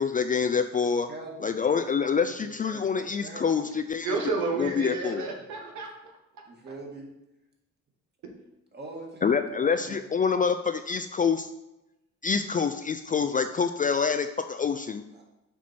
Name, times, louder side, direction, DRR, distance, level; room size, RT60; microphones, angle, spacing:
voice 1, 0.0-1.1 1.4-4.2 4.6-5.3 9.2-11.5 12.2-15.0, left 6 dB, 30° left, 9 dB, 0.3 m, -26 dB
voice 2, 1.1-3.9 6.5-7.1 8.7-10.0 15.1-15.2, right 2 dB, 35° right, -1 dB, 2.1 m, -43 dB
voice 3, 4.0-6.1 8.2-8.4, right 3 dB, 75° right, 1 dB, 1.4 m, -31 dB
7.2 x 4.5 x 4.3 m, 0.92 s
cardioid pair, 90°, 30 cm